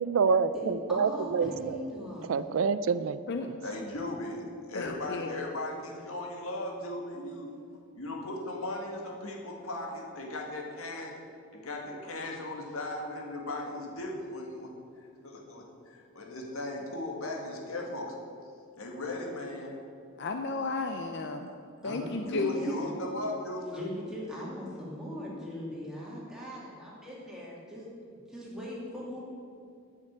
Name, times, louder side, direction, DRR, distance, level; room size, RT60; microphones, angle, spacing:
voice 1, 0.0-1.8 2.3-3.2 3.5-3.6, right 5 dB, 70° right, 14 dB, 0.4 m, -27 dB
voice 2, 0.5-2.3 21.8-23.0 23.7-27.8 28.3-29.2, equal, 5° right, -6 dB, 2.5 m, -40 dB
voice 3, 3.6-7.5 8.0-11.2 11.5-14.7 15.2-18.1 18.8-19.8 21.8-22.0 22.2-23.8, left 2 dB, 85° left, 0 dB, 1.9 m, -37 dB
voice 4, 4.7-5.4 20.2-21.5 21.8-22.7, left 3 dB, 55° left, 5 dB, 0.6 m, -33 dB
9.8 x 6.5 x 8.7 m, 2.4 s
head